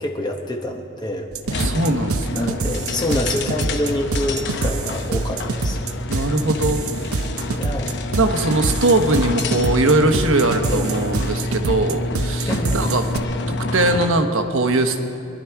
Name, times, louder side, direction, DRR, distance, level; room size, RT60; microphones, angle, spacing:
voice 1, 0.0-1.8 2.3-6.0 7.6-8.0 10.7-10.8 12.5-12.9, left 1 dB, 20° left, 2 dB, 1.0 m, -27 dB
sound 1, 1.3-13.2, right 3 dB, 80° right, 0.7 m, -26 dB
sound 2, 1.4-14.3, left 2 dB, 55° left, 0.8 m, -28 dB
voice 2, 1.5-2.4 6.1-6.8 8.2-13.1 13.5-15.0, right 2 dB, 60° right, 6 dB, 1.2 m, -20 dB
24.0 x 11.5 x 4.7 m, 2.4 s
head